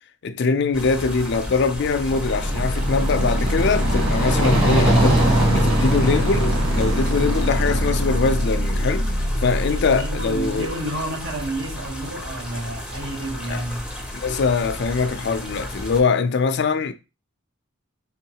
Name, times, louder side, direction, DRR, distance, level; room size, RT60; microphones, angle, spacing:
voice 1, 0.2-10.7 13.5-13.6 14.1-16.9, left 4 dB, 55° left, 0.4 m, -23 dB
sound 1, 0.7-16.0, left 1 dB, 5° right, 0.6 m, -34 dB
sound 2, 1.9-10.7, equal, 85° right, 1.4 m, -24 dB
sound 3, 2.0-8.0, right 1 dB, 25° right, 1.5 m, -23 dB
voice 2, 9.7-13.9, right 1 dB, 65° right, 1.2 m, -30 dB
4.6 x 3.6 x 2.8 m
head